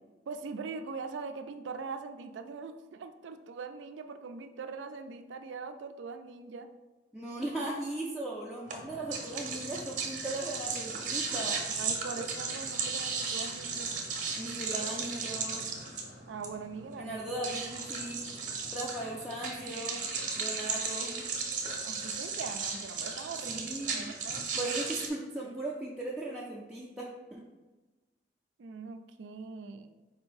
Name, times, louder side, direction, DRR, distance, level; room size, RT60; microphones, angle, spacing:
voice 1, 0.3-6.7 11.7-14.0 16.3-17.2 21.8-24.7 25.4-25.5 28.6-29.9, right 4 dB, 80° right, 8 dB, 0.4 m, -42 dB
voice 2, 7.1-11.6 14.4-15.7 17.0-18.3 18.7-20.0 20.4-21.1 23.4-24.1 24.6-27.4, right 1 dB, 5° right, -6 dB, 0.4 m, -38 dB
sound 1, 8.7-25.1, right 4 dB, 45° right, 0.6 m, -36 dB
4.0 x 2.7 x 4.6 m, 1.2 s
head